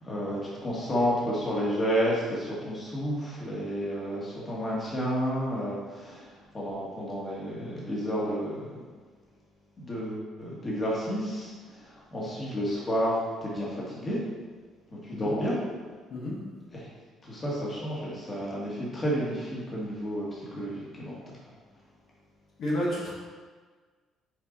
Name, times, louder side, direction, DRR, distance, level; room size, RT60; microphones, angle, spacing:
voice 1, 0.0-8.9 9.8-14.2 15.0-15.5 16.7-16.9 17.2-21.4, equal, 25° left, -6 dB, 1.9 m, -31 dB
voice 2, 22.6-23.1, equal, 55° left, -5 dB, 1.7 m, -30 dB
7.0 x 4.8 x 4.0 m, 1.5 s
cardioid pair, 140°, 0 cm